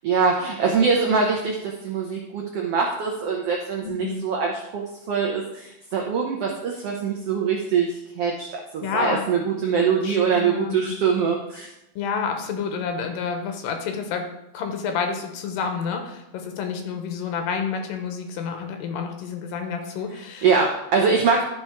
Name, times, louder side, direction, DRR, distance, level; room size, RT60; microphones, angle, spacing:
voice 1, 0.0-8.5 8.7-11.7 20.4-21.4, right 5 dB, 80° right, 0 dB, 1.3 m, -23 dB
voice 2, 3.8-4.2 8.8-9.3 10.0-10.9 12.0-14.3 14.5-20.5, left 6 dB, 85° left, 5 dB, 2.7 m, -29 dB
12.5 x 4.4 x 4.5 m, 0.88 s
omnidirectional pair, 3.9 m